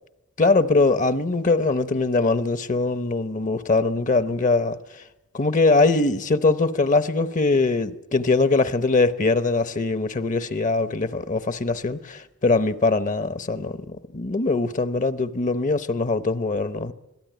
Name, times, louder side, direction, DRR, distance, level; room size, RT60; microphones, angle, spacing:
voice 1, 0.4-5.0 5.3-16.9, left 3 dB, 35° left, 0.8 m, -22 dB
25.5 x 18.0 x 9.1 m
head